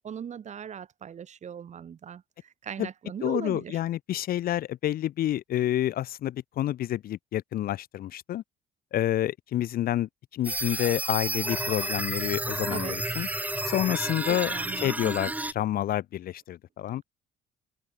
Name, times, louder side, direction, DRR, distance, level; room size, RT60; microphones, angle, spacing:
voice 1, 0.0-3.8 12.7-13.0 14.3-15.2, right 8 dB, 45° right, 3.3 m, -39 dB
voice 2, 3.2-8.4 8.9-13.3 13.6-14.5 14.8-17.0, left 12 dB, 60° left, 1.2 m, -29 dB
sound 1, 10.4-15.5, right 2 dB, 10° right, 3.4 m, -31 dB
cardioid pair, 110°, 17 cm